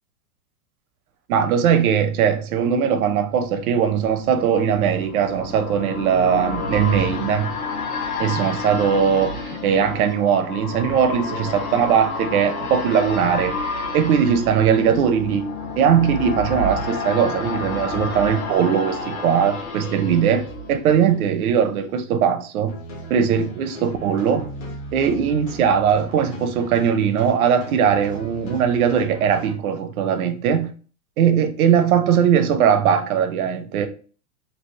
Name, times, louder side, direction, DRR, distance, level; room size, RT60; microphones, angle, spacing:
voice 1, 1.3-7.5 8.2-13.6 13.9-15.5 15.8-22.7 23.1-24.5 24.9-30.7 31.2-33.9, right 8 dB, 75° right, 0.7 m, -20 dB
sound 1, 3.5-21.3 21.7-21.8, left 3 dB, 75° left, 1.1 m, -30 dB
sound 2, 22.7-29.5, right 2 dB, 25° left, 0.4 m, -37 dB
3.4 x 2.4 x 2.7 m
supercardioid pair, 165°, 44 cm